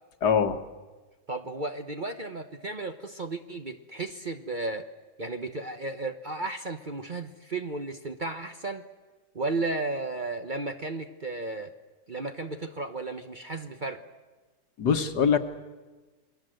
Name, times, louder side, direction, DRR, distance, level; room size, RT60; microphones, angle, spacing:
voice 1, 0.2-0.6 14.8-15.4, left 6 dB, 70° left, 8 dB, 1.9 m, -23 dB
voice 2, 1.3-4.9 5.2-8.8 9.3-11.7 12.1-14.0, right 2 dB, 35° right, 6 dB, 1.0 m, -34 dB
28.5 x 21.5 x 7.8 m, 1.3 s
omnidirectional pair, 1.8 m